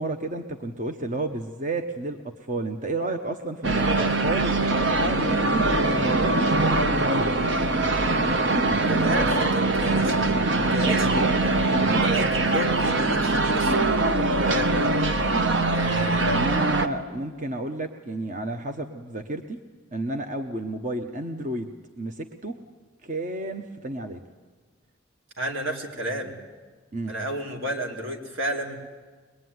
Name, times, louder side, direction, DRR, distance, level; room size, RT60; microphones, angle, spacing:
voice 1, 0.0-7.4 10.8-11.3 11.9-12.1 16.2-19.6 19.9-22.6 23.0-24.2 26.9-27.1, right 2 dB, 40° right, 6 dB, 1.0 m, -31 dB
sound 1, 3.6-16.9, right 2 dB, 65° right, 1.2 m, -22 dB
voice 2, 8.8-10.3 10.7-11.6 12.0-14.0 14.4-15.0 15.7-16.5 25.4-26.4 27.1-28.8, equal, 80° right, 2 dB, 3.4 m, -32 dB
23.0 x 21.5 x 9.5 m, 1.4 s
head